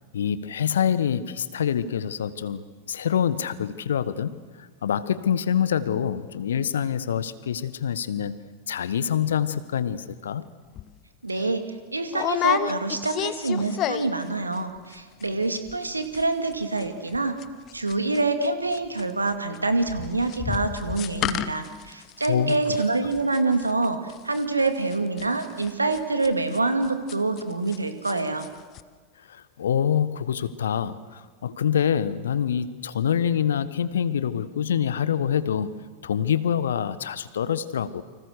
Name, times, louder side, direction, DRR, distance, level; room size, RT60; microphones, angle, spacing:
voice 1, 0.1-4.4 4.8-8.4 8.7-10.4 22.3-22.6 29.3-38.0, left 8 dB, 65° left, 15 dB, 1.2 m, -26 dB
sound 1, 10.8-10.9 11.3-11.5 12.1-14.3 14.5-15.0 15.2-15.3 15.5-15.9 16.1-27.8 28.0-28.5 28.7-28.8, left 12 dB, 35° left, 1.0 m, -31 dB
voice 2, 11.2-11.6 11.9-17.4 17.7-28.5, right 3 dB, 80° right, 8 dB, 2.3 m, -26 dB
29.5 x 25.5 x 6.6 m, 1.5 s
figure-of-eight pair, 90°, 0 cm